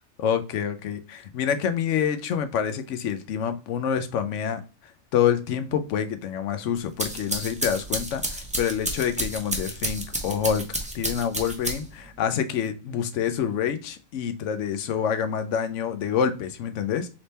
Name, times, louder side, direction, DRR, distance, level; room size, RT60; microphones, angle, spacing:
voice 1, 0.2-4.6 5.1-10.6 10.9-17.1, left 8 dB, 70° left, 0.9 m, -27 dB
sound 1, 6.8-12.1, right 1 dB, 10° right, 0.4 m, -31 dB
3.4 x 3.1 x 4.1 m
omnidirectional pair, 1.4 m